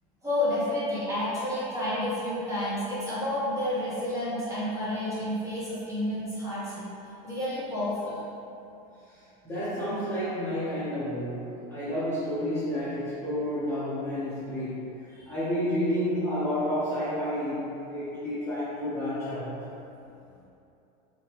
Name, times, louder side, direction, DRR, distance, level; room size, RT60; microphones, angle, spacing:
voice 1, 0.2-6.8 7.2-8.1, left 1 dB, 15° right, -10 dB, 1.0 m, -30 dB
voice 2, 9.4-14.9 15.3-19.6, equal, 10° left, -13 dB, 0.8 m, -30 dB
2.8 x 2.7 x 3.0 m, 2.8 s
supercardioid pair, 130°, 20 cm